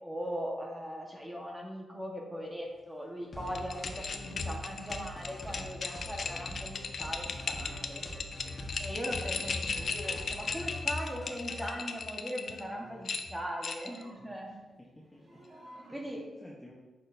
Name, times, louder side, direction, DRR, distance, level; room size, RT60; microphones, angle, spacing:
voice 1, 0.0-8.0 8.8-14.5 15.7-16.2, equal, 10° right, -1 dB, 1.3 m, -40 dB
sound 1, 3.3-11.7, equal, 35° left, 1.2 m, -45 dB
sound 2, 3.5-12.6 13.1-14.0, left 4 dB, 50° left, 0.5 m, -36 dB
sound 3, 8.9-9.5 10.2-10.6 11.3-12.0 12.4-13.1 13.6-14.3 15.0-16.2, right 1 dB, 35° right, 1.9 m, -56 dB
voice 2, 14.5-15.4 15.9-16.7, left 1 dB, 5° left, -5 dB, 0.9 m, -54 dB
6.3 x 6.2 x 2.6 m, 1.2 s
cardioid pair, 105°, 0 cm